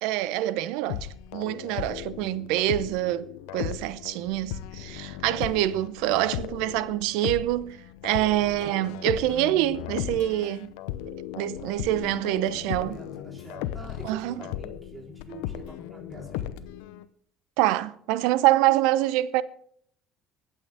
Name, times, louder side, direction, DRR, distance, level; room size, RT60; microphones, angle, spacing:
voice 1, 0.0-3.3 3.5-7.8 8.0-10.7 11.4-13.0 14.0-14.3 17.6-19.4, right 14 dB, 80° right, 0.7 m, -25 dB
sound 1, 0.9-17.0, left 12 dB, 85° left, 0.7 m, -36 dB
voice 2, 12.7-16.6, right 1 dB, 15° right, 3.9 m, -45 dB
24.5 x 8.3 x 3.5 m
supercardioid pair, 90°, 0 cm